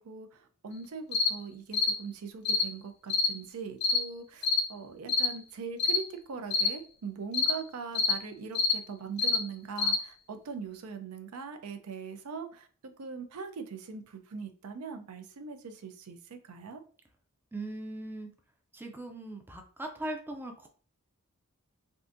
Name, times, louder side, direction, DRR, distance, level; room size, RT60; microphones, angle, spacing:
voice 1, 0.0-12.7 13.0-16.8, right 5 dB, 75° right, 7 dB, 0.5 m, -41 dB
sound 1, 1.1-1.3 1.7-1.9 2.4-2.7 3.1-3.3 3.8-4.0 4.4-4.7 5.1-5.3 5.8-6.0 6.5-6.7 7.3-7.6 7.9-8.2 8.5-8.8 9.2-9.4 9.8-10.0, left 4 dB, 50° left, 0.5 m, -26 dB
voice 2, 17.5-18.3 18.7-20.7, right 1 dB, 10° right, 4 dB, 0.4 m, -39 dB
3.6 x 2.5 x 2.5 m, 0.41 s
head